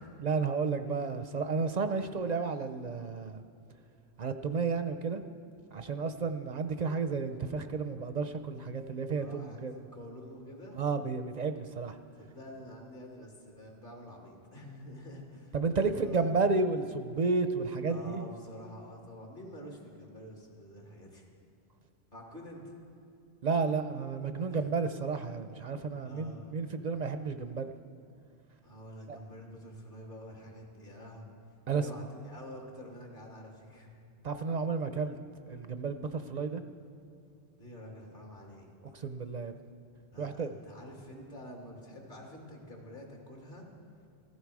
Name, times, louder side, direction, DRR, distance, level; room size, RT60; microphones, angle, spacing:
voice 1, 0.2-3.4 4.2-5.2 5.7-9.8 10.7-12.0 15.5-18.2 23.4-27.7 29.1-29.2 31.7-31.9 34.2-35.2 35.5-36.6 38.9-39.5 40.2-40.5, right 4 dB, 50° right, 8 dB, 0.6 m, -32 dB
voice 2, 5.9-6.2 9.1-10.8 12.2-16.5 17.9-21.2 22.1-22.7 24.5-24.8 26.0-26.5 28.6-31.3 31.7-34.0 37.6-38.7 40.1-43.7, equal, 50° left, -1 dB, 2.5 m, -48 dB
15.5 x 15.0 x 4.8 m, 2.7 s
omnidirectional pair, 1.1 m